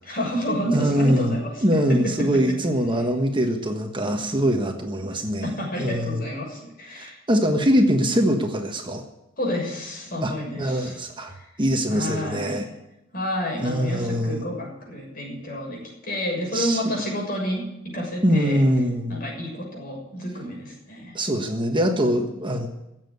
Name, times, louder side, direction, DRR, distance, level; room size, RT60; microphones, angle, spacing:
voice 1, 0.0-1.5 1.9-2.3 5.4-7.2 9.4-11.0 11.4-11.5 11.9-12.6 13.1-18.6 19.1-21.2 22.4-22.5, equal, 45° left, 0 dB, 6.7 m, -29 dB
voice 2, 0.7-6.2 6.9-9.0 10.2-11.3 11.6-12.7 13.6-14.4 16.5-16.9 18.2-19.2 21.1-22.7, equal, 25° right, 4 dB, 1.4 m, -23 dB
16.0 x 7.6 x 9.5 m, 0.90 s
head